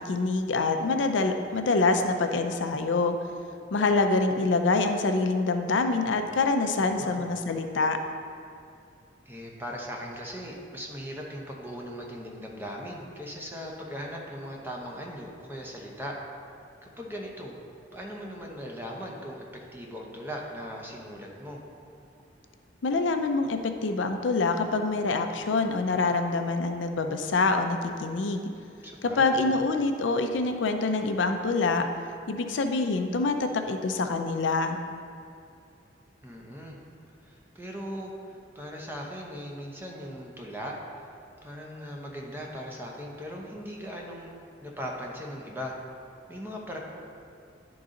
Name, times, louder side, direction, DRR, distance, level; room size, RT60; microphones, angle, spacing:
voice 1, 0.0-3.2 3.7-8.0 22.8-28.5 29.0-31.9 32.3-34.8, left 3 dB, 80° left, 6 dB, 0.5 m, -26 dB
voice 2, 6.8-7.4 9.3-16.2 16.8-17.5 17.9-19.5 19.7-21.6 28.8-29.5 36.2-36.8 37.2-40.8 41.4-44.3 44.6-45.7 46.3-46.8, equal, 10° right, -1 dB, 0.8 m, -39 dB
10.5 x 3.9 x 3.8 m, 2.5 s
head